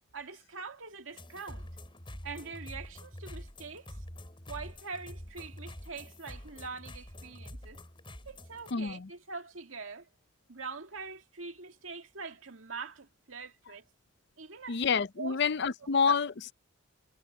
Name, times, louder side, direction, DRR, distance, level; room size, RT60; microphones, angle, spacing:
voice 1, 0.1-1.7 2.2-4.0 4.5-7.8 8.3-10.1 10.5-13.8 14.4-14.8 15.2-15.4, right 4 dB, 80° right, 2.1 m, -43 dB
sound 1, 1.1-8.7, left 1 dB, 25° left, 5.2 m, -46 dB
voice 2, 8.7-9.1 14.7-16.5, left 5 dB, 55° left, 0.6 m, -28 dB
head